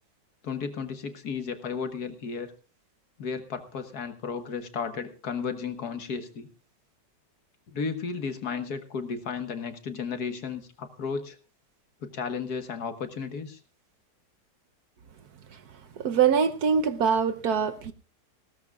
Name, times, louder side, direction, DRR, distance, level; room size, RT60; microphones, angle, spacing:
voice 1, 0.4-2.5 3.2-6.5 7.7-11.4 12.0-13.6, left 5 dB, 60° left, 8 dB, 1.8 m, -34 dB
voice 2, 16.0-17.9, right 6 dB, 65° right, 10 dB, 1.3 m, -23 dB
19.5 x 17.0 x 2.4 m, 0.33 s
omnidirectional pair, 1.9 m